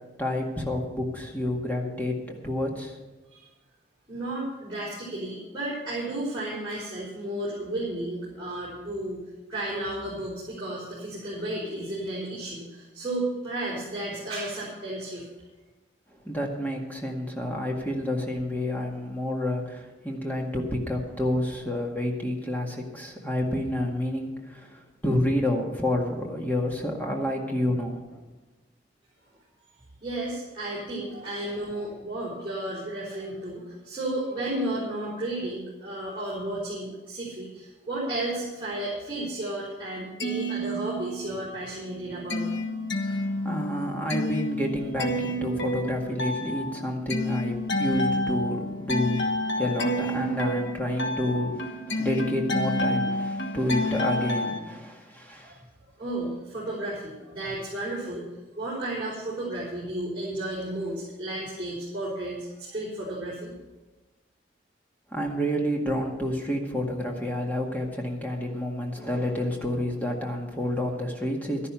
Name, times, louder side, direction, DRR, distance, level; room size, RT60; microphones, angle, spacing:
voice 1, 0.2-3.0 16.2-28.2 43.1-55.6 65.1-71.7, left 1 dB, 10° left, 0 dB, 1.9 m, -29 dB
voice 2, 4.1-9.2 9.5-15.3 30.0-42.6 55.4-55.6 56.0-58.3 58.6-63.5, right 1 dB, 25° right, -9 dB, 4.3 m, -33 dB
sound 1, 40.0-41.4 41.7-54.6, left 1 dB, 85° left, 1.4 m, -29 dB
12.5 x 11.0 x 5.8 m, 1.1 s
head